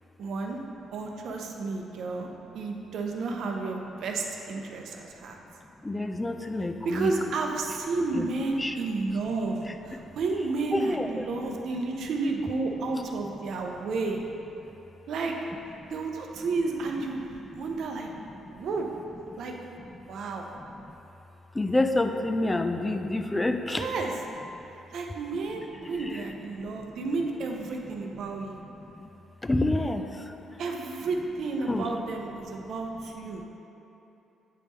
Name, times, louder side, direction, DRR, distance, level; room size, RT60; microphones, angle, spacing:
voice 1, 0.2-0.6 0.9-2.3 2.5-5.4 6.8-14.2 15.1-15.4 15.9-18.9 19.4-19.6 20.1-20.5 23.8-24.1 24.9-28.6 30.6-33.4, right 3 dB, 70° right, 1 dB, 0.6 m, -31 dB
voice 2, 5.9-7.1 8.0-8.3 8.6-8.7 10.7-11.1 21.6-23.8 29.5-30.0 31.7-31.8, left 2 dB, 15° left, 6 dB, 0.4 m, -27 dB
8.5 x 3.5 x 3.2 m, 3.0 s
cardioid pair, 90°, 0 cm